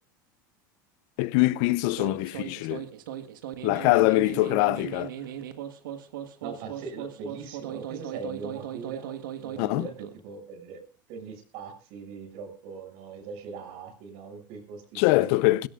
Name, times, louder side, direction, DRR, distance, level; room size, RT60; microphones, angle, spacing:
voice 1, 1.2-2.9 3.6-5.1 9.6-9.9 14.9-15.7, left 20 dB, 65° left, 0.7 m, -23 dB
sound 1, 1.8-10.2, right 10 dB, 80° right, 1.6 m, -38 dB
voice 2, 6.4-10.8 11.1-15.3, right 5 dB, 60° right, 6.5 m, -41 dB
20.5 x 16.5 x 2.5 m
hypercardioid pair, 95°, 11 cm